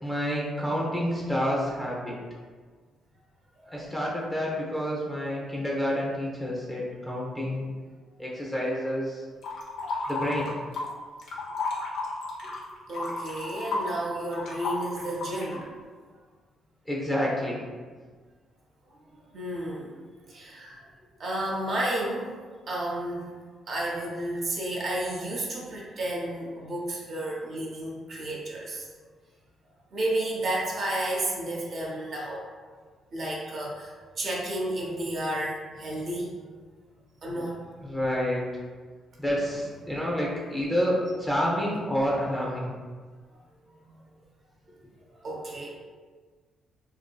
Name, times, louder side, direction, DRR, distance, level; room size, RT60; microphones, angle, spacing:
voice 1, 0.0-2.1 3.7-7.6 8.2-9.2 10.1-10.5 16.9-17.6 37.8-38.4 39.2-42.7, equal, 10° left, -4 dB, 0.7 m, -28 dB
sound 1, 9.4-10.9 11.2-15.6, left 3 dB, 80° left, 0.6 m, -33 dB
voice 2, 12.9-15.7 19.1-19.9 20.3-20.8 21.2-23.3 23.7-28.9 29.9-32.4 33.1-36.4 37.2-37.6 43.8-44.0 45.2-45.7, right 1 dB, 50° right, -4 dB, 0.6 m, -32 dB
2.6 x 2.6 x 2.3 m, 1.5 s
cardioid pair, 90°, 0 cm